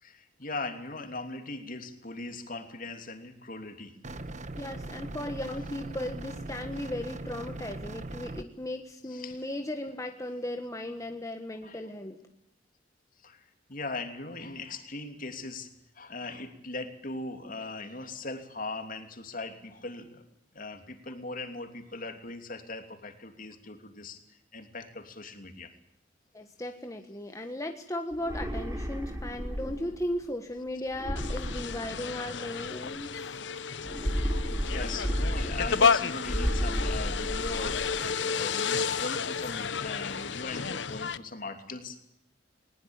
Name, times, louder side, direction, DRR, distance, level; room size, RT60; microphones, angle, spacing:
voice 1, 0.0-3.9 9.1-9.4 11.6-11.8 13.2-15.7 15.9-20.2 20.5-25.7 33.0-33.2 34.6-42.0, left 3 dB, 50° left, 6 dB, 3.0 m, -39 dB
sound 1, 4.0-8.4, right 2 dB, 40° right, 1.3 m, -40 dB
voice 2, 4.5-12.2 21.1-21.2 26.3-33.4, left 1 dB, 20° left, 5 dB, 1.5 m, -36 dB
sound 2, 28.1-30.0 30.9-32.4 33.8-35.9 36.2-38.0, equal, 15° right, 3.6 m, -32 dB
sound 3, 31.2-41.2, left 6 dB, 70° left, 0.9 m, -31 dB
20.5 x 20.0 x 8.9 m, 0.82 s
head